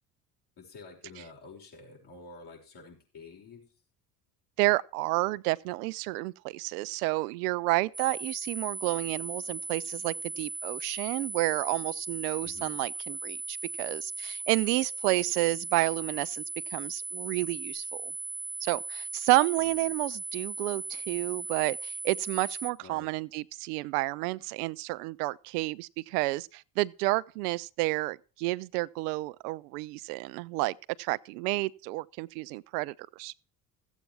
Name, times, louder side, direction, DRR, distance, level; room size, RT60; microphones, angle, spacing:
voice 1, 0.6-3.7 12.4-12.8 19.6-19.9 22.8-23.1, left 3 dB, 60° left, 5.6 m, -49 dB
voice 2, 4.6-16.4 16.7-18.1 18.6-33.3, right 21 dB, 80° right, 0.5 m, -30 dB
sound 1, 7.9-22.7, right 3 dB, 5° right, 1.0 m, -38 dB
14.0 x 8.3 x 4.6 m
hypercardioid pair, 65°, 46 cm